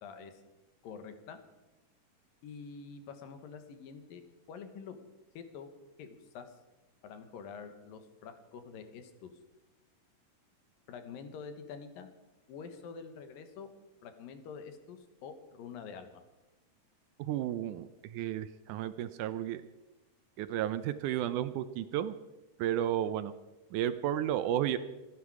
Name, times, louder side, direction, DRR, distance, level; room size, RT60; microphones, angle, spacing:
voice 1, 0.0-0.3 0.8-1.4 2.4-4.2 4.5-5.0 5.3-5.7 6.0-6.5 7.0-9.3 10.9-12.1 12.5-13.7 14.0-16.2, left 6 dB, 85° left, 8 dB, 3.1 m, -46 dB
voice 2, 17.2-19.6 20.4-22.2 22.6-23.3 23.7-24.8, right 11 dB, 75° right, 12 dB, 2.0 m, -32 dB
27.0 x 10.0 x 4.9 m, 1.1 s
omnidirectional pair, 3.9 m